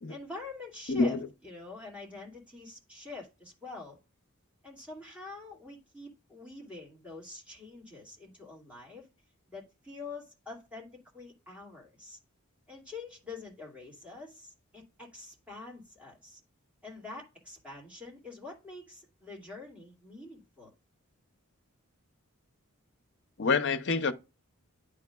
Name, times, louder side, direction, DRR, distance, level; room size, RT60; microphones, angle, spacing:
voice 1, 0.1-4.0 4.6-9.1 9.5-12.2 12.7-16.4 16.8-20.7, left 3 dB, 5° right, 2.3 m, -46 dB
voice 2, 0.9-1.2 23.4-24.1, left 4 dB, 55° left, 0.7 m, -26 dB
10.5 x 4.9 x 2.3 m
head